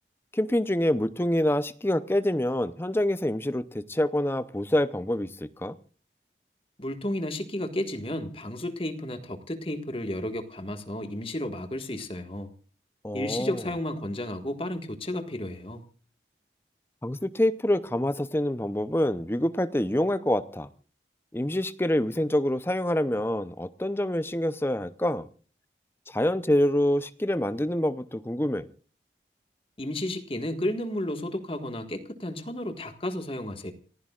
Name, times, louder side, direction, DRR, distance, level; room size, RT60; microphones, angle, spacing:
voice 1, 0.3-5.8 13.0-13.6 17.0-20.7 21.3-25.3 26.1-28.7, left 1 dB, 15° left, 14 dB, 0.7 m, -26 dB
voice 2, 6.8-12.5 13.1-15.8 29.8-33.7, left 1 dB, 30° left, 7 dB, 1.7 m, -32 dB
29.0 x 15.5 x 2.4 m, 0.39 s
head